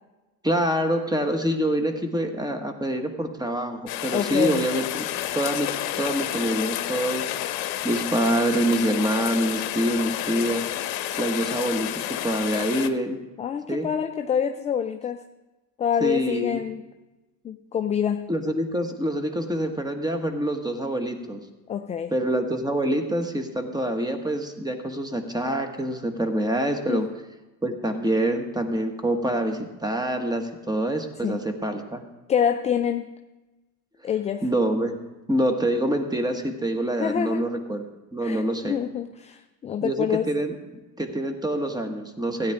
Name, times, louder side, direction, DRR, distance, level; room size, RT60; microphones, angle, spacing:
voice 1, 0.4-5.0 5.3-7.3 7.8-10.7 11.2-13.2 13.7-13.9 16.0-16.6 18.3-21.4 22.1-27.1 27.6-32.0 34.4-35.0 35.3-37.8 38.1-38.8 39.8-40.6 41.0-42.5, right 1 dB, 10° right, 5 dB, 1.5 m, -26 dB
Rain, 3.9-12.9, left 12 dB, 50° left, 1.0 m, -30 dB
voice 2, 4.1-4.7 13.4-15.2 15.8-16.8 17.4-18.3 21.7-22.1 26.9-27.0 31.2-31.5 32.3-33.1 34.0-34.5 36.9-37.4 38.2-40.3, left 8 dB, 15° left, 7 dB, 0.4 m, -26 dB
16.0 x 9.7 x 3.6 m, 1.1 s
hypercardioid pair, 80°, 48 cm